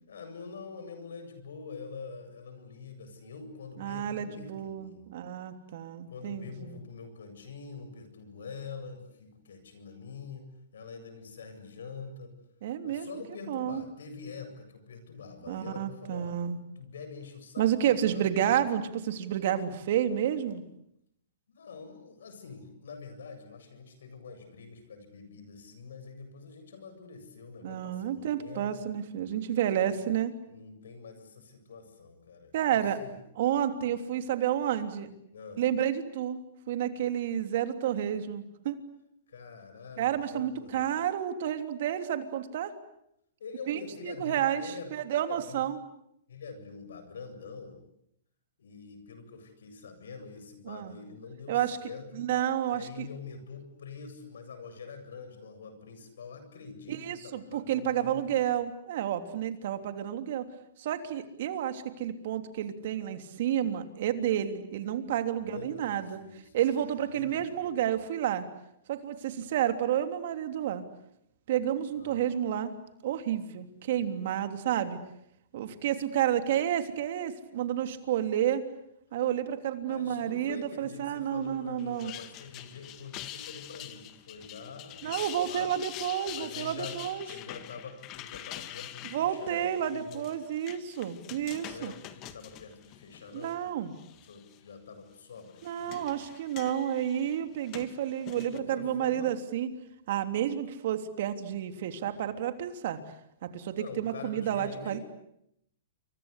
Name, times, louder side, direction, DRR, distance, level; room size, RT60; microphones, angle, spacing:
voice 1, 0.1-5.0 5.9-12.3 12.8-16.4 16.8-18.5 21.5-28.9 29.9-30.1 30.5-33.2 35.3-35.6 39.3-41.0 43.4-44.9 45.3-45.7 46.3-47.8 48.6-52.3 52.7-58.5 65.4-67.9 71.9-72.3 79.8-85.7 86.3-87.0 87.3-90.3 91.6-93.7 94.1-96.2 98.3-99.3 103.8-105.0, left 5 dB, 80° left, 9 dB, 7.8 m, -45 dB
voice 2, 3.8-6.8 12.6-13.2 13.5-13.8 15.5-16.6 17.6-20.6 27.6-30.3 32.5-33.0 33.4-35.1 35.6-38.8 40.0-42.7 43.7-44.6 44.9-45.8 50.6-51.0 51.5-51.8 52.1-53.1 56.9-60.5 60.8-66.2 66.5-68.4 68.9-70.8 71.5-72.7 73.0-75.0 75.5-78.6 79.1-82.1 85.0-87.3 89.1-91.9 93.3-93.9 95.6-99.7 100.1-103.0 103.4-105.0, right 10 dB, 60° right, 8 dB, 3.2 m, -30 dB
sound 1, 81.8-93.6 94.0-94.6 95.4-98.6, left 13 dB, 35° left, 1.9 m, -45 dB
29.0 x 24.5 x 8.4 m, 0.77 s
hypercardioid pair, 135°, 0 cm